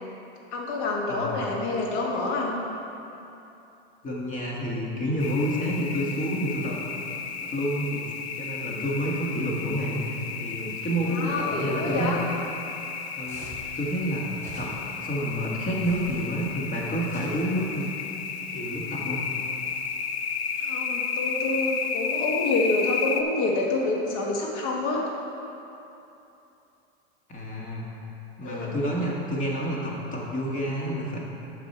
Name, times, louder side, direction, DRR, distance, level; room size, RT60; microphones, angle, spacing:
voice 1, 0.5-2.6 11.1-12.2 20.6-25.0 28.4-28.7, left 2 dB, 60° left, -1 dB, 1.9 m, -27 dB
voice 2, 4.0-6.8 7.5-8.0 8.4-12.2 13.2-13.5 13.8-14.3 14.6-14.7 15.0-17.9 18.5-19.2 27.3-27.9 28.4-31.2, equal, 25° left, -3 dB, 2.1 m, -29 dB
sound 1, 5.2-23.2, left 6 dB, 80° left, 0.8 m, -33 dB
sound 2, 13.2-13.7 14.4-15.0 15.8-16.3 17.1-17.9, right 2 dB, 10° left, 2.2 m, -46 dB
9.8 x 6.1 x 4.6 m, 2.8 s
hypercardioid pair, 105°, 31 cm